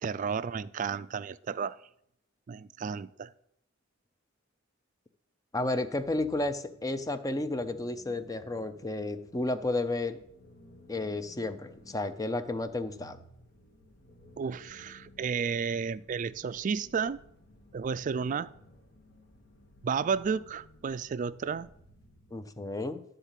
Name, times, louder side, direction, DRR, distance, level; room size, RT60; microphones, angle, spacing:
voice 1, 0.0-1.8 2.5-3.3 14.4-17.2 17.7-18.5 19.8-21.7, right 6 dB, 40° right, 16 dB, 0.3 m, -32 dB
voice 2, 5.5-10.2 10.9-13.2 22.3-23.0, left 2 dB, 20° left, 10 dB, 0.6 m, -32 dB
sound 1, 5.9-22.6, left 1 dB, 55° left, 1.2 m, -57 dB
11.5 x 4.0 x 7.4 m, 0.75 s
head